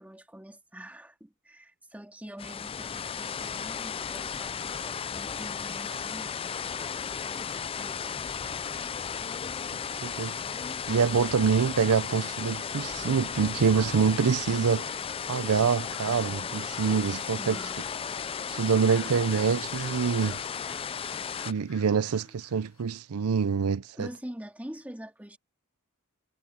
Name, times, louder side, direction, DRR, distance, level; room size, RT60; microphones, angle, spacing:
voice 1, 0.0-8.3 17.1-17.8 23.9-25.4, equal, 5° right, 2.1 m, -46 dB
sound 1, 2.4-21.5, left 7 dB, 25° left, 0.4 m, -35 dB
voice 2, 10.0-10.4 10.9-14.9 15.3-17.6 18.5-20.4 21.5-24.1, right 6 dB, 80° right, 0.5 m, -26 dB
sound 2, 15.8-18.1 18.8-22.9, left 9 dB, 65° left, 1.3 m, -50 dB
head